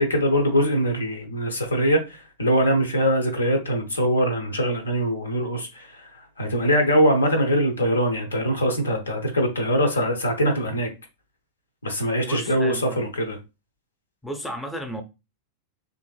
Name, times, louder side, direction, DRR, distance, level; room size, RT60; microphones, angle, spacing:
voice 1, 0.0-5.9 6.4-10.9 11.8-13.4, equal, 75° left, 0.6 m, -22 dB
voice 2, 12.2-13.1 14.2-15.0, equal, 5° left, 0.6 m, -33 dB
3.1 x 2.5 x 2.3 m
figure-of-eight pair, 90°, 0 cm